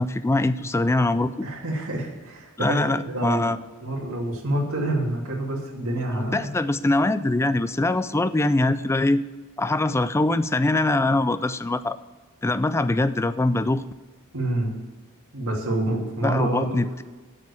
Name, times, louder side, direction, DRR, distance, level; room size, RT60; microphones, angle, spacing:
voice 1, 0.0-1.5 2.6-3.6 6.1-9.2 9.6-12.0 12.4-13.8 16.2-17.0, left 2 dB, 10° left, 14 dB, 0.3 m, -23 dB
voice 2, 1.4-3.5 3.8-6.5 14.3-14.7 15.3-16.8, right 1 dB, 70° right, -2 dB, 2.5 m, -27 dB
8.3 x 6.6 x 8.4 m, 1.3 s
head